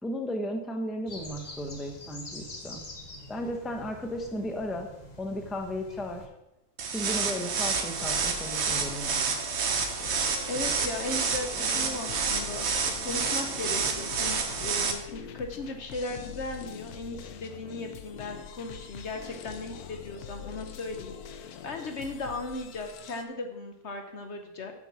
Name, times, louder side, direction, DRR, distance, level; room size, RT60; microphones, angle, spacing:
voice 1, 0.0-2.8 3.3-4.9 5.2-6.2 6.9-9.2, equal, ahead, 4 dB, 0.8 m, -35 dB
sound 1, 1.1-6.3, left 1 dB, 30° left, 1.2 m, -45 dB
sound 2, 6.8-14.9, right 5 dB, 50° right, 1.1 m, -29 dB
sound 3, 8.0-23.2, left 9 dB, 85° left, 1.2 m, -44 dB
voice 2, 10.5-12.7 13.0-21.2 21.6-24.7, left 2 dB, 55° left, 5 dB, 1.1 m, -37 dB
7.2 x 6.9 x 6.1 m, 0.86 s
omnidirectional pair, 1.5 m